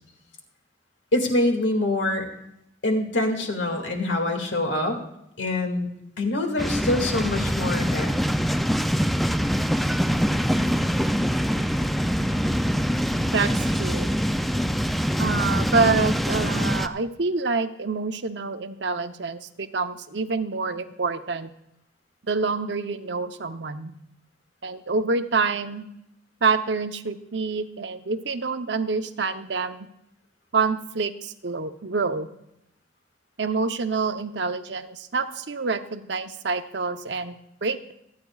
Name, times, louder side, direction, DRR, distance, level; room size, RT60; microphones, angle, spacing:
voice 1, 1.1-2.3 2.8-5.0 5.4-5.9 6.2-8.1, left 1 dB, 90° left, 3 dB, 2.1 m, -25 dB
sound 1, 6.6-16.9, equal, ahead, 0.3 m, -24 dB
voice 2, 13.2-14.2 15.2-21.5 22.2-23.9 24.6-25.8 26.4-29.9 30.5-32.3 33.4-37.9, right 4 dB, 65° right, 9 dB, 0.8 m, -27 dB
26.5 x 9.5 x 2.4 m, 0.81 s
head